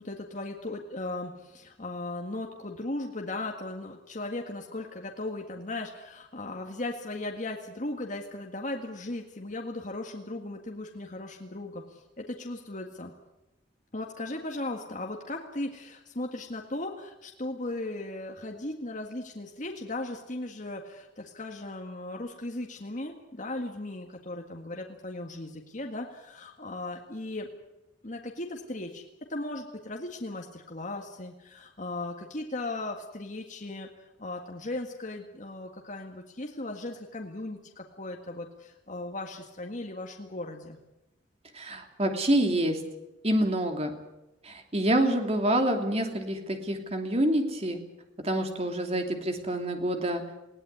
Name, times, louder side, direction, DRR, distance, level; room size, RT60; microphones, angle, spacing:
voice 1, 0.0-13.1 13.9-27.5 28.0-29.0 29.3-40.8, left 2 dB, 40° left, 2 dB, 1.8 m, -37 dB
voice 2, 41.5-42.8 43.2-43.9 44.4-47.8 48.2-50.2, right 1 dB, 35° right, 4 dB, 2.9 m, -27 dB
20.5 x 17.0 x 9.5 m, 0.95 s
head